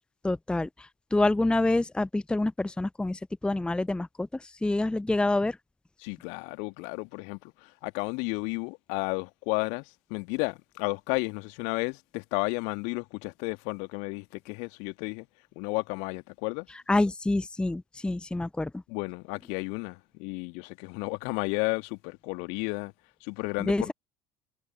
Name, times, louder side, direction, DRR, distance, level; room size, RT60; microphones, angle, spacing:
voice 1, 0.2-0.7 1.1-4.3 4.6-5.5 16.9-18.7 23.7-23.9, left 2 dB, 5° left, 0.8 m, -26 dB
voice 2, 6.0-15.3 15.5-16.7 18.9-22.9 23.2-23.9, left 33 dB, 55° left, 1.8 m, -33 dB
figure-of-eight pair, 65°, 14 cm